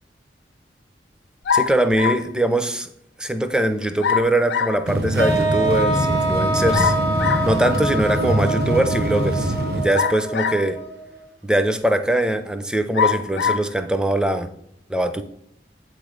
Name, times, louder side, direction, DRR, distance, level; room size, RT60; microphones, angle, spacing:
sound 1, 1.5-2.3 4.0-4.8 6.7-7.5 9.9-10.8 11.5-11.6 12.9-13.7, left 6 dB, 75° left, 0.4 m, -23 dB
voice 1, 1.5-2.9 3.2-6.9 7.4-10.8 11.4-14.5 14.9-15.2, right 1 dB, 5° right, 8 dB, 0.4 m, -22 dB
sound 2, 4.9-9.8, right 1 dB, 60° right, 0.7 m, -24 dB
sound 3, 5.2-11.2, right 1 dB, 85° right, 1.0 m, -25 dB
8.0 x 3.1 x 5.0 m, 0.74 s
head